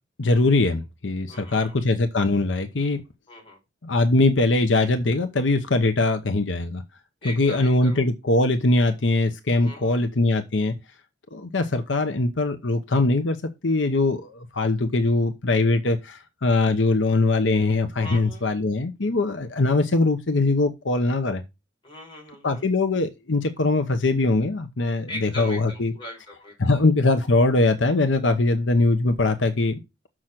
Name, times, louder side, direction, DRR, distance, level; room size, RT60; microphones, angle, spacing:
voice 1, 0.2-3.0 3.8-6.8 7.2-10.7 11.3-13.4 13.6-21.4 22.4-25.9 26.6-29.8, left 2 dB, 85° left, 0.9 m, -22 dB
voice 2, 1.3-1.7 3.3-3.6 7.2-8.0 9.6-10.1 18.0-18.5 21.8-22.6 25.1-26.7, left 1 dB, 30° left, 4.5 m, -40 dB
6.4 x 6.2 x 5.9 m
head